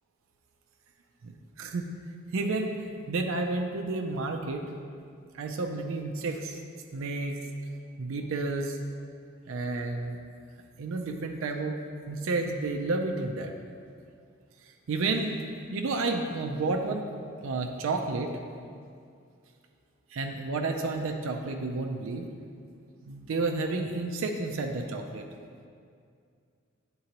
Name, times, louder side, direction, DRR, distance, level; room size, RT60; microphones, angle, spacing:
voice 1, 1.2-4.6 5.3-6.6 6.9-7.4 8.0-8.8 9.5-10.2 10.8-11.8 12.1-13.5 14.9-15.3 15.7-17.1 17.4-18.3 20.1-22.2 23.0-25.2, right 3 dB, 65° right, 3 dB, 0.4 m, -31 dB
9.1 x 3.7 x 2.9 m, 2.3 s
head